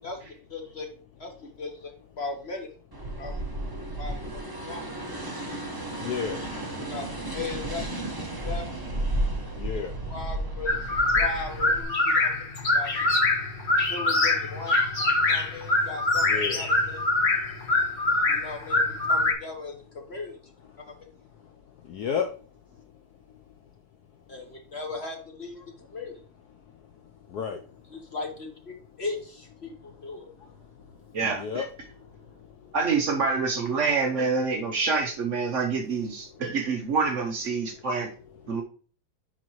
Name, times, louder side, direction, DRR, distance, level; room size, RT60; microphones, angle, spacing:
voice 1, 0.0-0.9 1.2-2.7 3.2-3.4 4.0-4.8 5.5-5.8 6.9-8.8 10.1-12.4 12.7-13.2 13.9-14.8 15.3-17.0 18.3-20.4 20.8-20.9 24.3-26.2 27.9-30.7 32.1-32.3, left 3 dB, 55° left, 3 dB, 0.7 m, -38 dB
sound 1, 2.9-11.8, right 1 dB, 20° right, 0.6 m, -33 dB
voice 2, 6.0-6.4 9.6-9.9 16.3-16.6 21.9-22.3 27.3-27.6 31.2-31.7, left 7 dB, 80° left, 5 dB, 0.9 m, -30 dB
sound 2, 10.7-19.3, left 2 dB, 30° left, 1.2 m, -24 dB
voice 3, 31.1-31.6 32.7-38.1 38.5-38.6, right 4 dB, 80° right, 2 dB, 0.6 m, -26 dB
10.5 x 4.2 x 3.0 m, 0.41 s
omnidirectional pair, 2.4 m